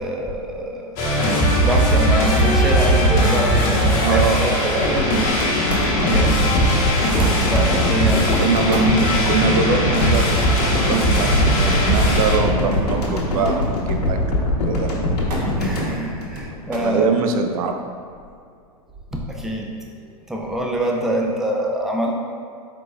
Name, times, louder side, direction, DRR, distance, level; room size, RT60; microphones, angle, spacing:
voice 1, 0.0-5.1 5.7-8.5 15.6-17.1 19.1-19.7 20.3-22.1, right 1 dB, ahead, -1 dB, 0.4 m, -26 dB
sound 1, 1.0-12.4, equal, 45° left, 0.9 m, -19 dB
voice 2, 4.0-4.9 7.9-14.9 16.8-17.7, right 4 dB, 65° right, 5 dB, 0.4 m, -23 dB
sound 2, 4.8-17.0 17.3-17.4, left 1 dB, 80° left, 0.9 m, -22 dB
Thump thud, 5.7-6.2 7.2-7.5 8.6-9.0 10.2-10.5 12.7-13.0 13.4-13.9 15.3-15.6 16.7-17.0 17.9-18.4 19.4-19.5, right 1 dB, 90° right, 0.8 m, -31 dB
4.5 x 4.0 x 2.3 m, 2.3 s
hypercardioid pair, 105°, 20 cm